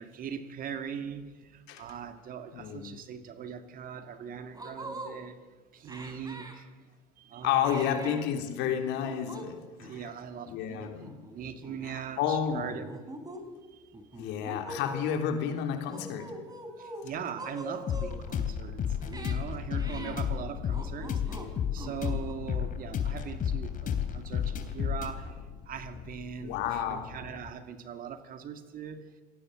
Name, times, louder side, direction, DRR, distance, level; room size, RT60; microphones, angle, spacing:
voice 1, 0.0-5.4 5.7-6.8 7.2-8.1 9.8-10.8 11.3-13.0 13.7-13.9 16.8-29.1, right 7 dB, 45° right, 8 dB, 2.3 m, -41 dB
voice 2, 2.5-2.9 7.4-10.0 10.5-11.1 11.9-12.7 14.2-16.3 19.9-20.1 26.4-27.1, left 8 dB, 60° left, 5 dB, 3.5 m, -31 dB
sound 1, 4.0-4.1 4.5-5.1 5.9-6.5 7.6-8.2 9.0-9.5 9.8-10.0 10.8-11.3 11.6-11.9 12.5-13.4 13.9-15.0 15.8-17.1 17.4-18.2 19.0-19.3 19.8-20.2 20.7-21.5 21.8-22.3, right 1 dB, 20° right, 4.2 m, -43 dB
sound 2, 17.9-27.5, left 8 dB, 40° left, 3.3 m, -33 dB
28.0 x 18.0 x 7.9 m, 1.4 s
figure-of-eight pair, 65°, 21 cm